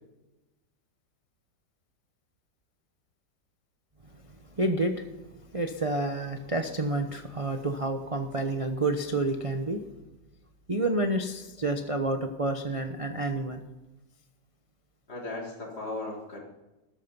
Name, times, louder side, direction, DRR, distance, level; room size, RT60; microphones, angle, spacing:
voice 1, 4.6-5.0 5.5-9.8 10.7-13.6, right 2 dB, 30° right, 5 dB, 0.7 m, -29 dB
voice 2, 15.1-16.4, left 2 dB, 60° left, -2 dB, 4.3 m, -36 dB
18.5 x 13.0 x 5.5 m, 1.0 s
omnidirectional pair, 1.9 m